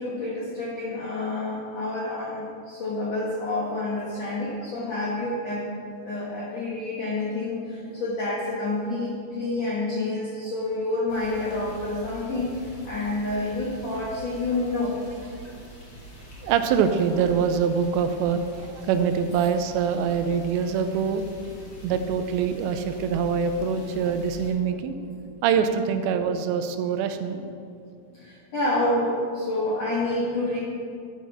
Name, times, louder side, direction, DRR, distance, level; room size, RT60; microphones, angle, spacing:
voice 1, 0.0-5.7 6.0-15.0 25.2-25.3 28.1-30.6, left 2 dB, 70° left, -6 dB, 1.5 m, -28 dB
sound 1, 11.1-24.5, equal, 40° left, 1.6 m, -44 dB
voice 2, 16.4-21.2 21.8-25.0 25.4-27.4, right 6 dB, 85° right, 8 dB, 2.7 m, -24 dB
12.5 x 5.7 x 5.8 m, 2.4 s
omnidirectional pair, 5.1 m